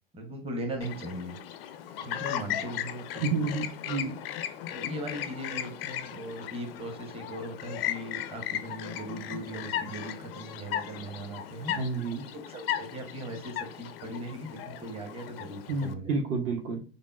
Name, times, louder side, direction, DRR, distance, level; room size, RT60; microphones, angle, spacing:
voice 1, 0.1-1.4 2.0-3.5 4.7-11.7 12.3-16.2, right 1 dB, 20° right, 3 dB, 0.8 m, -39 dB
Chirp tweet, 0.8-15.9, left 11 dB, 80° left, 0.4 m, -37 dB
voice 2, 3.2-4.2 11.7-12.3 15.7-16.8, right 4 dB, 50° right, 2 dB, 0.8 m, -30 dB
3.4 x 2.1 x 2.3 m, 0.38 s
hypercardioid pair, 80°, 29 cm